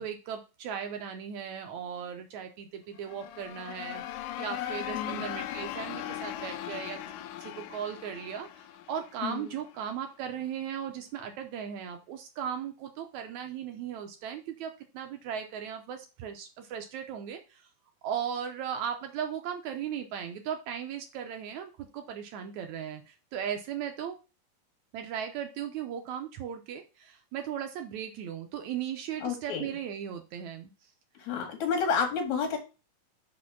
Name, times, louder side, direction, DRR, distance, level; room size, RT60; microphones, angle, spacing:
voice 1, 0.0-4.0 4.4-7.0 7.4-17.6 18.0-24.2 24.9-30.7, right 8 dB, 80° right, 5 dB, 1.7 m, -37 dB
sound 1, 3.0-9.8, left 12 dB, 80° left, 2.1 m, -39 dB
voice 2, 29.1-29.7 31.2-32.6, left 6 dB, 55° left, 4 dB, 2.8 m, -30 dB
5.6 x 4.2 x 5.9 m, 0.31 s
omnidirectional pair, 4.2 m